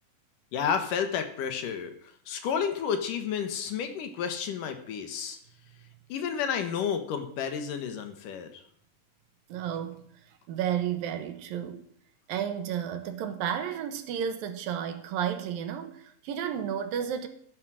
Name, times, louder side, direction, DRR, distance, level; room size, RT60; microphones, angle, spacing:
voice 1, 0.5-5.4 6.1-8.6, left 7 dB, 70° left, 2.9 m, -31 dB
voice 2, 9.5-10.1 10.5-11.9 12.3-17.3, right 9 dB, 80° right, 3.0 m, -32 dB
14.5 x 9.9 x 6.3 m
omnidirectional pair, 4.1 m